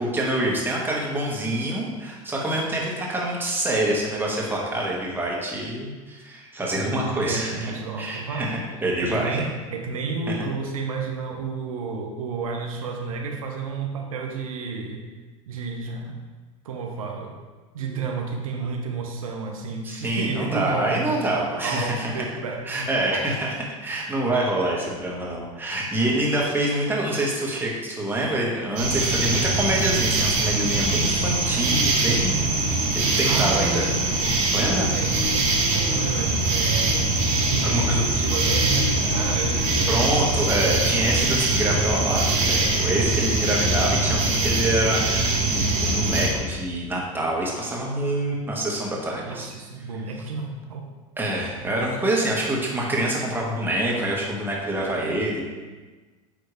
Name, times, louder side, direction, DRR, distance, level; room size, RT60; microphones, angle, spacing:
voice 1, 0.0-7.7 8.0-9.4 19.8-22.1 22.7-32.4 32.9-33.9 34.5-34.9 37.6-38.0 39.9-49.5 51.2-55.4, right 1 dB, 10° right, -3 dB, 1.8 m, -26 dB
voice 2, 7.2-8.6 9.0-15.1 15.5-16.3 16.6-17.4 17.7-21.1 21.6-22.7 31.5-31.7 33.2-34.4 34.9-40.4 49.2-50.9, right 4 dB, 85° right, 2 dB, 0.8 m, -31 dB
sound 1, 28.8-46.3, right 2 dB, 70° right, 1.8 m, -22 dB
9.3 x 3.4 x 3.4 m, 1.3 s
hypercardioid pair, 85°, 18 cm